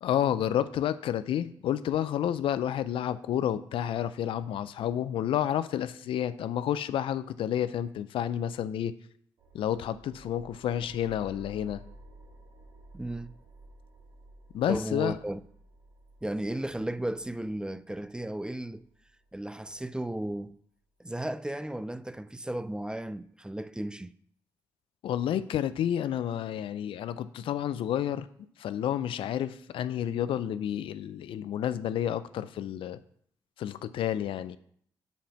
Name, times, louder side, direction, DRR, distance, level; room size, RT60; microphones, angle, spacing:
voice 1, 0.0-8.9 9.5-11.8 14.5-15.2 25.0-28.3 28.6-33.0 33.6-34.6, left 10 dB, 75° left, 0.4 m, -30 dB
sound 1, 9.4-20.4, right 2 dB, 80° right, 2.3 m, -54 dB
voice 2, 12.9-13.4 14.7-15.4 16.2-18.9 19.3-20.6 21.0-24.1, right 1 dB, 10° right, 0.4 m, -34 dB
5.3 x 5.1 x 5.7 m
supercardioid pair, 50°, 9 cm